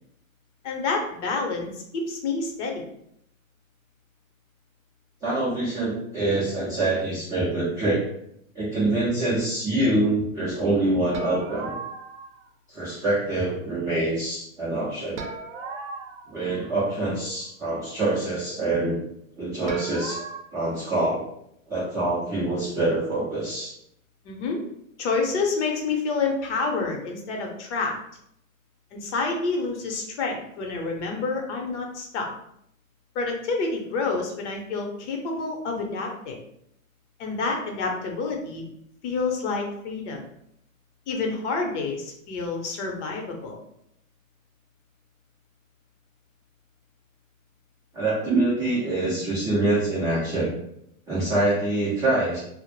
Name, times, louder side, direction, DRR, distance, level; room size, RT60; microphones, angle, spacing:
voice 1, 0.6-2.8 24.2-24.6 25.0-27.9 28.9-32.3 33.1-36.4 37.2-38.6 39.0-40.2 41.1-43.6, left 4 dB, 55° left, 2 dB, 0.8 m, -28 dB
voice 2, 5.2-8.0 8.5-11.7 12.7-15.2 16.3-19.0 19.4-20.2 20.5-21.2 21.7-23.7 47.9-50.5 51.1-52.4, right 2 dB, 10° right, -10 dB, 0.4 m, -25 dB
sound 1, 11.1-12.5 15.2-17.1 19.7-20.4, right 4 dB, 60° right, 0.6 m, -37 dB
2.0 x 2.0 x 3.0 m, 0.73 s
hypercardioid pair, 130°, 41 cm